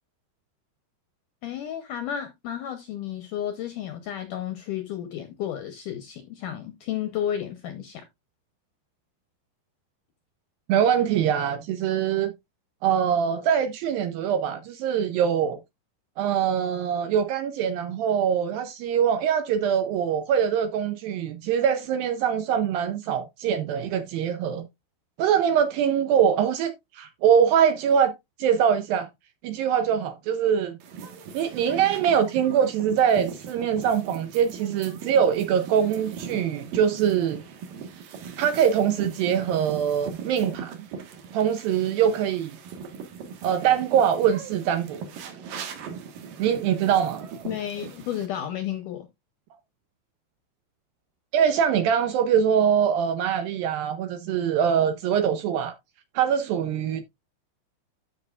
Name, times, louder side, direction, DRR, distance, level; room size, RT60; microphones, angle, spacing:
voice 1, 1.4-8.0 47.5-49.1, left 10 dB, 75° left, 1.9 m, -32 dB
voice 2, 10.7-12.3 12.8-15.6 16.2-24.7 25.2-28.1 28.4-29.1 29.4-30.8 31.3-37.4 38.4-40.9 41.3-42.6 43.4-45.0 46.4-47.2 51.3-55.7 56.2-57.0, right 8 dB, 80° right, 2.1 m, -23 dB
sound 1, 30.8-48.3, right 6 dB, 65° right, 2.7 m, -40 dB
13.0 x 5.7 x 2.3 m
omnidirectional pair, 4.7 m